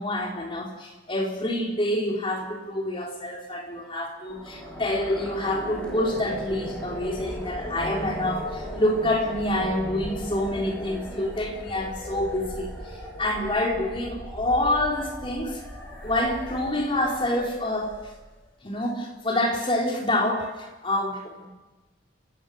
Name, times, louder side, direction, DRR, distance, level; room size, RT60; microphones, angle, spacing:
voice 1, 0.0-15.6 16.0-18.0 18.6-21.5, left 1 dB, 25° left, 0 dB, 3.8 m, -27 dB
sound 1, 4.3-18.4, equal, 5° left, 5.6 m, -37 dB
29.5 x 16.5 x 6.5 m, 1.1 s
head